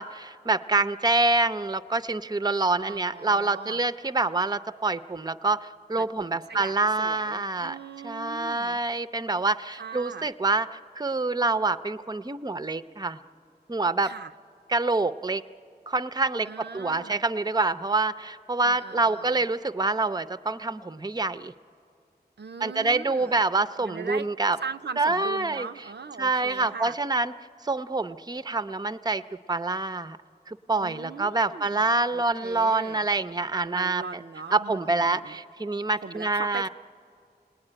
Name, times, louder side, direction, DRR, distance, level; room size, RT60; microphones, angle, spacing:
voice 1, 0.0-7.8 8.0-10.7 11.0-13.2 13.7-14.1 14.7-15.4 15.9-21.5 22.6-24.6 25.0-25.7 26.2-27.3 27.6-29.2 29.5-30.2 30.5-34.2 34.5-36.7, right 3 dB, 25° right, 13 dB, 0.6 m, -26 dB
voice 2, 2.8-3.8 6.0-8.8 9.7-10.3 14.0-14.3 16.4-17.2 18.6-19.4 22.4-23.4 23.8-24.3 24.6-27.0 30.8-33.1 33.7-35.4 36.0-36.7, right 5 dB, 75° right, 7 dB, 0.5 m, -40 dB
28.0 x 19.5 x 9.9 m, 2.6 s
wide cardioid pair, 45°, 18 cm